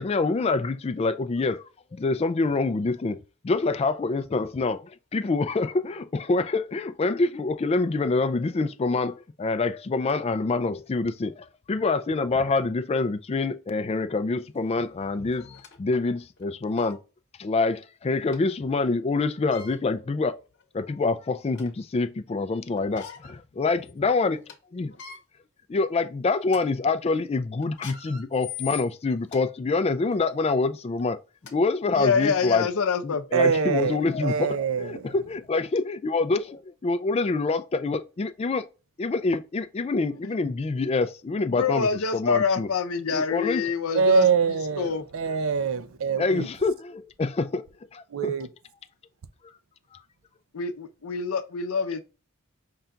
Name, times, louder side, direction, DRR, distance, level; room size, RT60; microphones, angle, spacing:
voice 1, 0.0-1.6 1.9-17.0 17.4-20.4 20.7-24.9 25.7-31.2 31.5-32.7 33.0-38.7 39.0-42.7 43.1-43.7 46.2-47.7 47.9-48.3, left 3 dB, 30° left, 0.3 m, -26 dB
sound 1, 14.6-14.7 15.3-15.8 16.4-16.5 16.8-17.0 18.3-18.4 19.4-19.8 20.5-20.6 21.1-21.8 22.8-23.4 23.8-23.9 24.3-24.5 24.9-25.2 25.8-26.0 26.4-26.6 27.6-29.4 30.0-30.2 31.1-31.2 31.5-31.6 32.2-32.3, left 9 dB, 55° left, 1.0 m, -42 dB
voice 2, 31.9-33.2 41.5-45.0 50.5-52.0, left 5 dB, 85° left, 0.6 m, -26 dB
voice 3, 33.3-35.1 43.9-46.5 48.1-48.5, right 6 dB, 70° right, 0.5 m, -24 dB
5.6 x 2.3 x 3.7 m
head